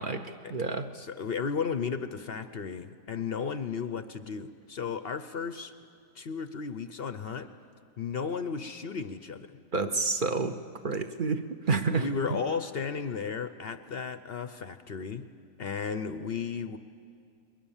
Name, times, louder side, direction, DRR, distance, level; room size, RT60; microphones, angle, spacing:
voice 1, 0.0-0.9 9.7-10.6 10.8-12.1, right 4 dB, 40° right, 8 dB, 0.7 m, -29 dB
voice 2, 0.9-5.7 6.1-7.5 8.0-9.5 11.9-15.3 15.6-16.8, left 6 dB, 55° left, 11 dB, 0.7 m, -34 dB
28.5 x 22.0 x 7.2 m, 2.3 s
omnidirectional pair, 1.7 m